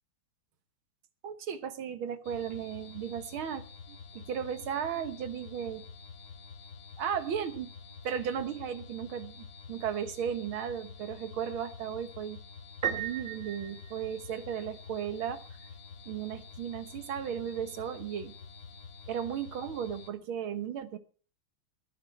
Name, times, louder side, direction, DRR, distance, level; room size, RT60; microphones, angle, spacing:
voice 1, 1.2-5.9 7.0-7.7 8.0-12.4 12.8-15.4 16.1-18.4 19.1-21.0, right 8 dB, 80° right, 2.1 m, -35 dB
sound 1, 2.2-20.1, left 5 dB, 80° left, 2.2 m, -48 dB
Piano, 12.8-14.7, right 8 dB, 45° right, 1.2 m, -36 dB
17.5 x 10.5 x 4.5 m
omnidirectional pair, 2.2 m